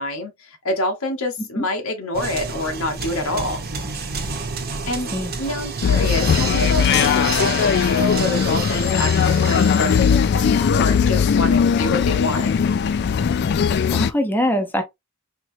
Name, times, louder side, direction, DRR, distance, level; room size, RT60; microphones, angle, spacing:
voice 1, 0.0-3.6 4.9-5.1 5.4-12.5, left 2 dB, 90° left, 1.1 m, -27 dB
sound 1, 2.1-10.6, right 5 dB, 45° right, 0.9 m, -30 dB
voice 2, 4.8-5.4 13.9-14.8, equal, 10° left, 0.6 m, -23 dB
sound 2, 5.8-14.1, left 6 dB, 50° left, 0.3 m, -19 dB
4.2 x 3.0 x 2.6 m
head